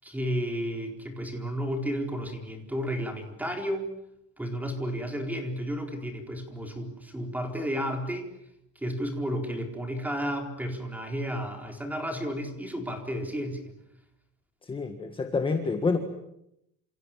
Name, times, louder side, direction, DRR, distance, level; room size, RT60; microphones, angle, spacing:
voice 1, 0.0-3.9 4.4-8.3 8.8-13.7, equal, 5° right, 4 dB, 4.2 m, -32 dB
voice 2, 14.6-16.0, left 4 dB, 15° left, 6 dB, 1.7 m, -28 dB
28.5 x 27.5 x 7.6 m, 0.80 s
cardioid pair, 175°, 34 cm